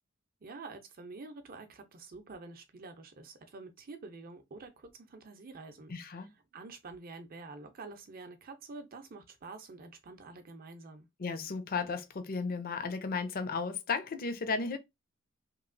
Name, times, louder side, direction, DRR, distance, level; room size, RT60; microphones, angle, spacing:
voice 1, 0.4-11.1, right 3 dB, 45° right, 0.6 m, -48 dB
voice 2, 5.9-6.3 11.2-14.8, left 4 dB, 45° left, 0.5 m, -34 dB
3.0 x 2.8 x 2.5 m
head